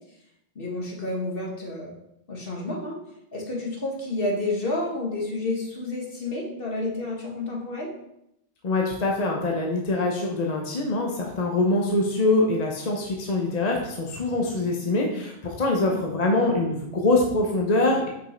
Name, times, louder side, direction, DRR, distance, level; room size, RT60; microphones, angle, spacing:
voice 1, 0.5-1.9 2.3-3.0 3.3-7.9 15.7-16.0, left 2 dB, 60° left, -2 dB, 1.7 m, -30 dB
voice 2, 8.6-18.1, left 2 dB, 45° left, 0 dB, 0.9 m, -24 dB
5.5 x 5.3 x 4.4 m, 0.81 s
omnidirectional pair, 1.0 m